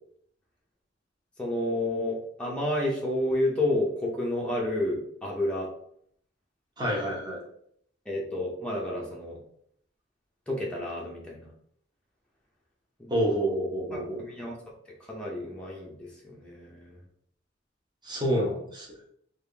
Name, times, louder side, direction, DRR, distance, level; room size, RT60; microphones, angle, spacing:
voice 1, 1.4-5.7 8.1-9.4 10.5-11.4 13.0-13.1 13.9-14.5 15.1-17.0, left 1 dB, 5° left, -4 dB, 0.6 m, -30 dB
voice 2, 6.8-7.4 13.1-14.2 18.0-18.9, right 1 dB, 25° right, -2 dB, 0.9 m, -28 dB
3.5 x 2.4 x 3.3 m, 0.67 s
head